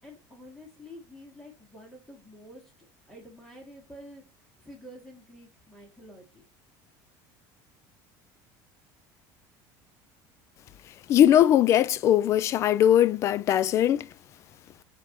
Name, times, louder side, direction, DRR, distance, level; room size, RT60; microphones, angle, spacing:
voice 1, 0.0-2.7 3.1-4.2 4.6-6.5, equal, 5° left, 2.6 m, -48 dB
voice 2, 11.1-14.1, left 11 dB, 35° left, 0.3 m, -20 dB
7.3 x 3.5 x 4.5 m
cardioid pair, 170°, 9 cm